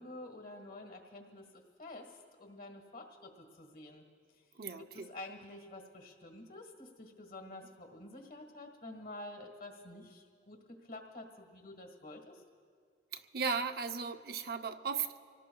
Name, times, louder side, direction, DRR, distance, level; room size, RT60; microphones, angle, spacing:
voice 1, 0.0-4.0 4.8-10.6 10.8-12.4, left 2 dB, 55° left, 4 dB, 1.6 m, -49 dB
voice 2, 4.5-5.1 13.1-15.2, right 5 dB, 60° right, 8 dB, 0.6 m, -36 dB
26.5 x 18.0 x 2.3 m, 2.1 s
head